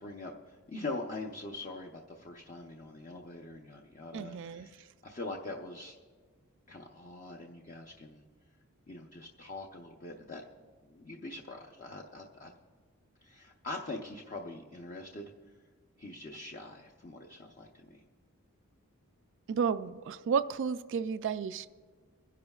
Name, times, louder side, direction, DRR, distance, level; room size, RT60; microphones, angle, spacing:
voice 1, 0.0-5.9 6.7-8.2 8.9-10.4 10.9-12.5 13.2-15.3 16.0-18.0, left 2 dB, 35° left, 0 dB, 0.7 m, -43 dB
voice 2, 4.1-4.7 19.5-21.7, right 6 dB, 55° right, 12 dB, 0.3 m, -32 dB
26.5 x 10.5 x 2.4 m, 1.5 s
head